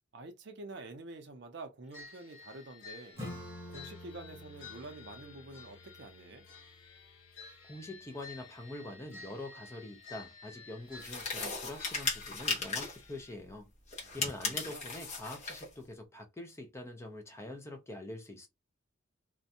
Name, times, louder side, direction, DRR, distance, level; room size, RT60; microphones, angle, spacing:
voice 1, 0.1-3.2 3.7-6.4 14.0-14.2 14.4-14.9, right 2 dB, 60° right, 0.5 m, -48 dB
sound 1, 1.9-13.3, left 5 dB, 70° left, 1.1 m, -53 dB
Acoustic guitar / Strum, 3.2-8.4, left 1 dB, 15° right, 0.9 m, -49 dB
voice 2, 7.6-13.7 14.1-18.5, left 1 dB, 15° left, 0.5 m, -45 dB
sound 2, 11.0-13.0 13.9-15.7, left 4 dB, 35° left, 0.9 m, -36 dB
2.5 x 2.2 x 2.7 m
head